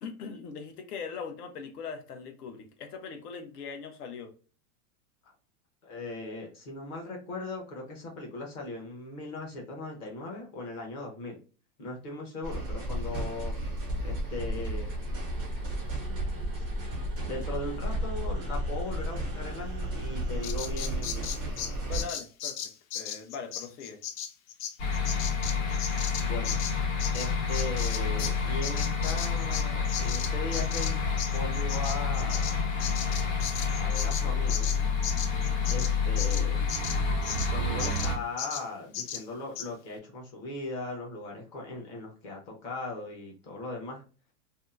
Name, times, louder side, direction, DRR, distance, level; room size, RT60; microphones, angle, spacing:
voice 1, 0.0-4.3 21.8-22.6 22.9-24.0, left 5 dB, 80° left, 0.9 m, -40 dB
voice 2, 5.8-11.4 11.8-13.6 14.0-14.9 16.6-16.7 17.2-21.3 26.3-26.6 27.1-31.0 31.3-32.6 33.7-34.7 35.7-36.6 37.5-44.0, left 2 dB, 30° left, 0.7 m, -38 dB
sound 1, 12.4-22.0, right 1 dB, 10° right, 0.3 m, -33 dB
Bird vocalization bird call bird song, 20.4-28.4 28.6-37.5 37.8-38.1 38.4-38.7 38.9-39.2 39.6-39.7, left 9 dB, 65° left, 0.5 m, -36 dB
sound 2, 24.8-38.2, left 5 dB, 50° left, 1.1 m, -28 dB
2.7 x 2.3 x 2.4 m
supercardioid pair, 160°, 45 cm